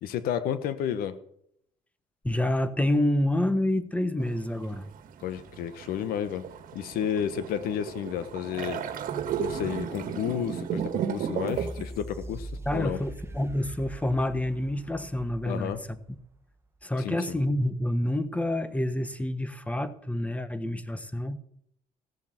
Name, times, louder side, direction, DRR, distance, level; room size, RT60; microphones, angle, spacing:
voice 1, 0.0-1.2 5.2-6.5 6.7-8.8 9.4-13.0 15.4-15.8 17.0-17.4, left 9 dB, 80° left, 12 dB, 1.4 m, -31 dB
voice 2, 2.2-4.8 12.7-15.7 16.8-21.4, left 1 dB, 10° left, 13 dB, 1.3 m, -28 dB
sound 1, 4.2-11.9, right 8 dB, 70° right, 1.7 m, -34 dB
sound 2, 11.5-16.4 16.8-16.9, right 1 dB, 15° right, 1.6 m, -41 dB
16.0 x 7.3 x 7.9 m, 0.71 s
supercardioid pair, 85°, 15 cm